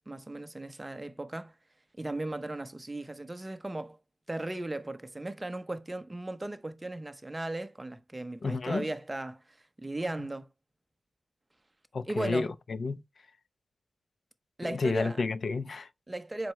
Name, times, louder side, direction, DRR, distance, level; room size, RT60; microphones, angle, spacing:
voice 1, 0.1-1.5 2.0-4.0 4.3-10.5 12.1-12.5 14.6-15.2 16.1-16.5, right 2 dB, 15° right, 0.9 m, -37 dB
voice 2, 8.4-8.9 11.9-13.0 14.6-15.9, left 4 dB, 60° left, 0.6 m, -31 dB
7.6 x 5.7 x 3.2 m
wide cardioid pair, 130°, 0 cm